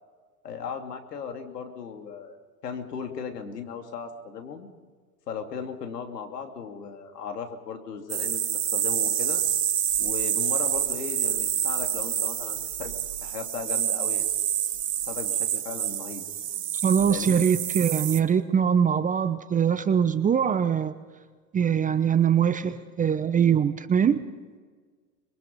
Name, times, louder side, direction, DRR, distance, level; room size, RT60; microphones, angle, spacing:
voice 1, 0.4-2.4 2.6-4.7 5.3-9.4 10.0-12.9 13.2-14.3 15.0-16.3 17.1-17.4, left 6 dB, 80° left, 4 dB, 2.9 m, -37 dB
sound 1, 8.1-18.2, right 10 dB, 80° right, 1.5 m, -27 dB
voice 2, 16.8-20.9 21.5-24.2, right 8 dB, 15° right, 12 dB, 0.8 m, -22 dB
26.0 x 22.5 x 5.4 m, 1.5 s
hypercardioid pair, 100°, 47 cm